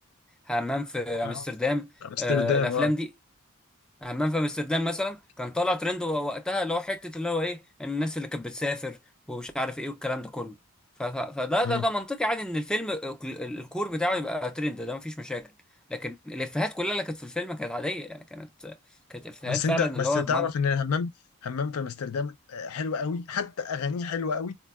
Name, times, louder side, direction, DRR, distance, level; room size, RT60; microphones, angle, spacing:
voice 1, 0.5-1.9 2.2-3.1 4.0-9.0 9.3-10.5 11.0-15.5 15.9-18.7 19.1-20.5, left 1 dB, 5° left, 0.3 m, -30 dB
voice 2, 2.0-2.9 11.6-11.9 19.4-21.1 21.4-24.6, left 6 dB, 80° left, 0.4 m, -29 dB
4.4 x 2.0 x 2.2 m
head